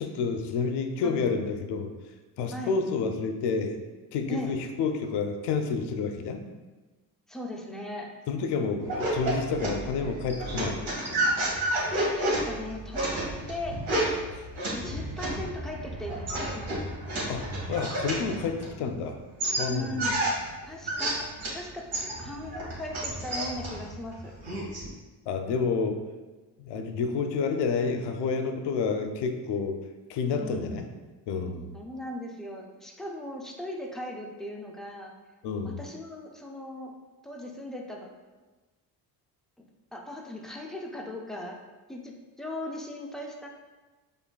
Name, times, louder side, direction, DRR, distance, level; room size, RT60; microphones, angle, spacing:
voice 1, 0.0-1.9 2.4-3.8 4.1-6.4 8.3-10.8 14.3-14.5 17.3-19.2 19.6-20.1 25.3-26.0 26.6-29.8 30.1-30.9 31.3-31.8 35.4-35.8, left 5 dB, 60° left, 6 dB, 0.5 m, -29 dB
voice 2, 7.3-8.1 12.2-13.8 14.7-16.9 19.7-20.3 20.7-21.9 22.2-24.3 30.4-30.8 31.7-35.1 35.6-37.0 37.2-38.1 39.9-41.6 41.9-43.5, left 1 dB, ahead, 0 dB, 0.4 m, -38 dB
sound 1, 8.8-19.0 19.4-21.6 21.9-24.9, right 1 dB, 70° right, 1.3 m, -31 dB
4.7 x 2.5 x 2.3 m, 1.2 s
hypercardioid pair, 60°, 49 cm